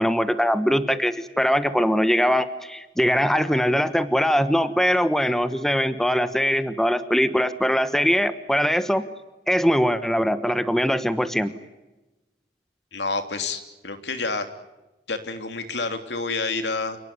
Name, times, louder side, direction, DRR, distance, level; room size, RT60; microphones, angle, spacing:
voice 1, 0.0-9.0 9.5-11.5, equal, ahead, 11 dB, 1.2 m, -22 dB
voice 2, 12.9-14.5 15.1-17.0, left 3 dB, 80° left, 7 dB, 3.2 m, -28 dB
28.5 x 19.5 x 9.7 m, 1.0 s
head